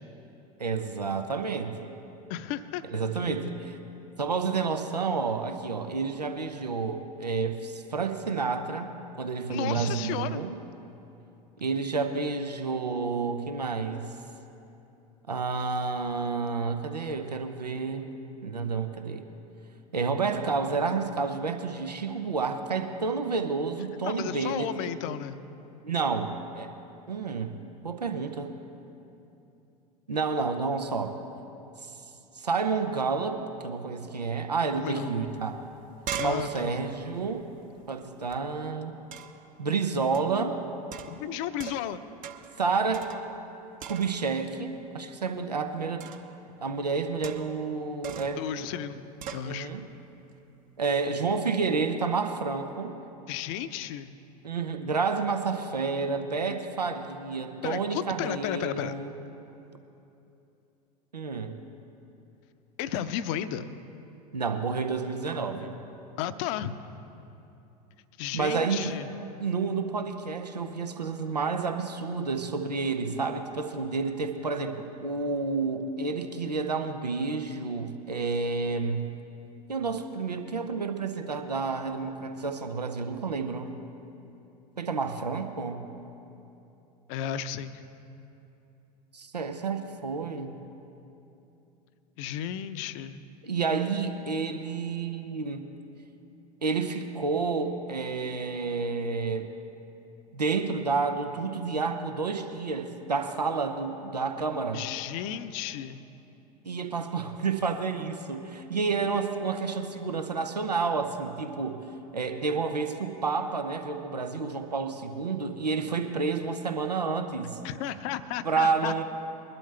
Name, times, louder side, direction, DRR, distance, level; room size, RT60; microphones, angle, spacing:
voice 1, 0.6-1.9 2.9-3.8 4.2-8.9 9.2-10.6 11.6-14.1 15.3-18.1 18.4-19.3 19.9-25.0 25.8-26.7 27.1-27.6 27.8-28.5 30.1-31.2 32.3-35.6 36.2-37.5 37.9-39.0 39.6-40.6 42.6-43.1 43.9-46.1 46.6-48.7 49.4-49.9 50.8-53.0 54.4-59.1 61.1-61.6 64.3-65.7 68.3-68.9 69.4-79.1 79.7-83.7 84.8-85.8 89.1-90.6 93.4-95.7 96.6-99.5 100.3-104.8 106.6-111.9 112.1-117.6 118.4-119.0, right 4 dB, 90° right, 7 dB, 0.7 m, -30 dB
voice 2, 2.3-2.8 9.5-10.4 24.0-25.4 34.8-35.2 36.2-36.7 41.1-42.0 48.4-49.0 49.3-49.7 53.3-54.1 57.6-58.9 62.8-63.7 66.2-66.7 68.2-69.1 87.1-87.8 92.2-93.2 104.7-106.0 117.6-119.0, left 10 dB, 55° left, 12 dB, 0.6 m, -33 dB
sound 1, 35.3-35.4 35.7-38.4 39.1-39.5 40.1-40.4 40.9-42.0 42.2-42.6 42.9-43.5 43.8-44.4 46.0-46.4 47.2-47.7 48.0-48.5 49.2-49.5, right 8 dB, 40° right, 0.8 m, -40 dB
21.5 x 11.5 x 3.3 m, 2.9 s
figure-of-eight pair, 75°, 20 cm